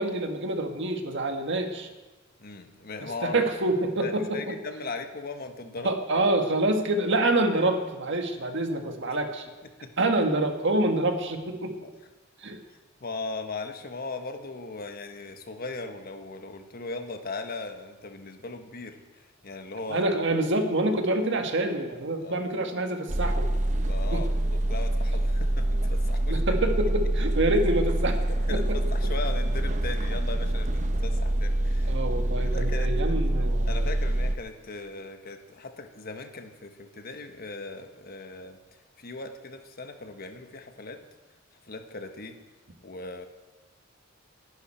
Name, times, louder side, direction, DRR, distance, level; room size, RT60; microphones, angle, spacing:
voice 1, 0.0-1.9 3.0-4.4 5.8-9.4 10.0-11.8 12.4-12.6 19.9-23.5 24.1-24.3 26.3-28.2 28.5-28.8 31.9-33.8, right 2 dB, 65° right, 5 dB, 1.7 m, -26 dB
voice 2, 2.4-3.4 4.0-6.2 9.8-9.9 11.8-11.9 13.0-20.0 22.1-22.7 23.9-26.4 28.5-32.0 32.4-33.1 33.6-41.0 41.6-42.4 42.8-43.3, left 3 dB, 50° left, 6 dB, 1.3 m, -38 dB
sound 1, 23.1-34.3, right 1 dB, 40° right, 0.8 m, -26 dB
20.5 x 11.5 x 4.4 m, 1.2 s
head